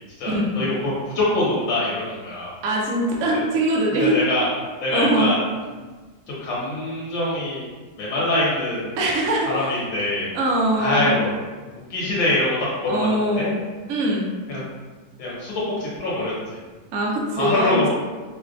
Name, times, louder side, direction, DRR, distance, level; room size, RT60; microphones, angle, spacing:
voice 1, 0.2-2.5 3.3-3.4 4.0-4.5 4.8-5.4 6.3-7.6 8.0-8.9 9.5-10.3 10.8-11.3 11.9-12.6 12.8-13.5 14.5-14.6 15.2-16.6 17.4-17.9, left 1 dB, 75° left, -7 dB, 1.9 m, -24 dB
voice 2, 2.6-4.2 4.9-5.3 9.0-9.7 10.3-11.1 12.9-13.6 13.9-14.3 16.9-17.9, right 1 dB, 70° right, -3 dB, 0.9 m, -22 dB
5.4 x 2.2 x 2.6 m, 1.3 s
omnidirectional pair, 2.1 m